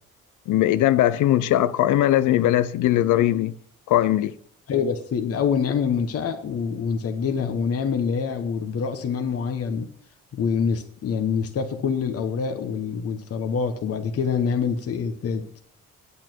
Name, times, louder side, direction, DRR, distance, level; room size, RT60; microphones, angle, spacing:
voice 1, 0.5-3.5 3.9-4.3, left 13 dB, 80° left, 0.6 m, -20 dB
voice 2, 4.7-9.9 10.3-15.6, left 6 dB, 50° left, 1.1 m, -25 dB
8.8 x 8.6 x 4.5 m
cardioid pair, 90°, 30 cm